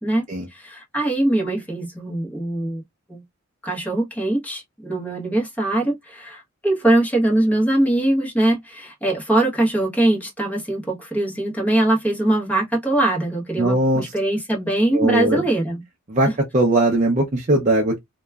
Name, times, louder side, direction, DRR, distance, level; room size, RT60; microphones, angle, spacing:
voice 1, 0.0-2.8 3.1-3.2 3.6-15.8 16.3-16.4, right 1 dB, 5° left, 0.9 m, -22 dB
voice 2, 13.6-14.0 14.9-15.4 16.1-16.3 16.5-18.0, right 1 dB, 35° right, 0.5 m, -19 dB
2.9 x 2.2 x 2.2 m
head